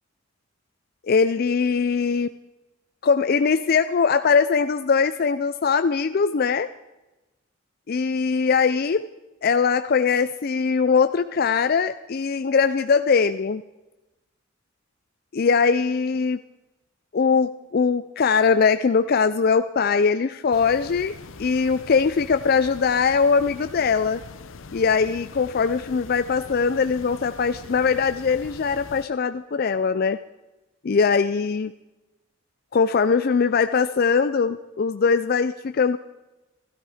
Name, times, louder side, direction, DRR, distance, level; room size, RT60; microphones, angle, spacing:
voice 1, 1.1-2.3 3.0-6.7 7.9-9.1 9.4-13.6 15.3-16.4 17.1-21.1 21.4-24.2 24.7-30.2 30.8-31.7 32.7-36.0, left 5 dB, 50° left, 10 dB, 0.4 m, -21 dB
sound 1, 20.5-29.1, left 4 dB, 85° left, 0.7 m, -42 dB
16.0 x 13.5 x 4.9 m, 1.0 s
head